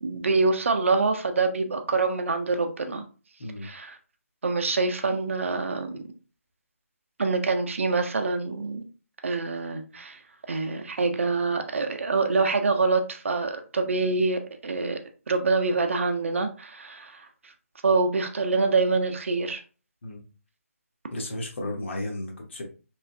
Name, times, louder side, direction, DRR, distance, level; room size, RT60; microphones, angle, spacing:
voice 1, 0.0-3.0 3.6-4.0 4.4-6.0 7.2-8.8 9.2-10.2 10.5-15.0 15.3-17.3 17.8-19.6, right 3 dB, 60° right, 6 dB, 0.5 m, -25 dB
voice 2, 21.1-22.6, left 1 dB, 50° left, 2 dB, 0.8 m, -33 dB
3.1 x 2.3 x 2.5 m, 0.36 s
figure-of-eight pair, 150°, 8 cm